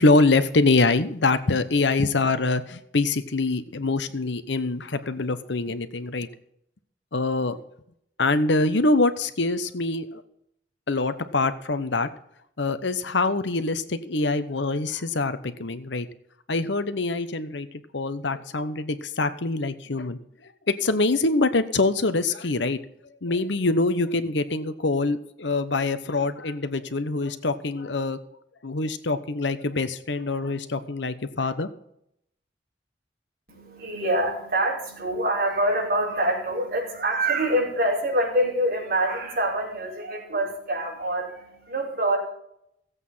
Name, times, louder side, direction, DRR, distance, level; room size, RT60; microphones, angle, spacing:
voice 1, 0.0-6.3 7.1-7.6 8.2-10.2 10.9-12.1 12.6-16.1 16.5-17.7 17.9-20.2 20.7-22.8 23.2-28.2 28.6-31.7, left 3 dB, 75° left, 11 dB, 1.0 m, -24 dB
voice 2, 33.5-42.2, right 1 dB, 50° right, -3 dB, 5.5 m, -25 dB
16.0 x 8.3 x 5.6 m, 0.74 s
head